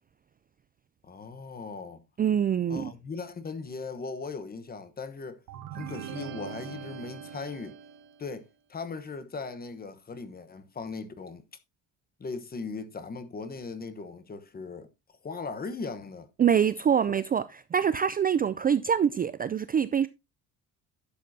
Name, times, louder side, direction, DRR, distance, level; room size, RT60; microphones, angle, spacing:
voice 1, 1.0-2.0 2.7-5.4 5.7-7.8 8.2-11.4 12.2-14.9 15.2-16.3, left 4 dB, 25° left, 1.1 m, -38 dB
voice 2, 2.2-2.9 16.4-20.1, right 8 dB, 25° right, 0.4 m, -25 dB
sound 1, 5.5-8.3, right 8 dB, 85° right, 1.9 m, -41 dB
11.5 x 7.3 x 2.7 m
cardioid pair, 145°, 34 cm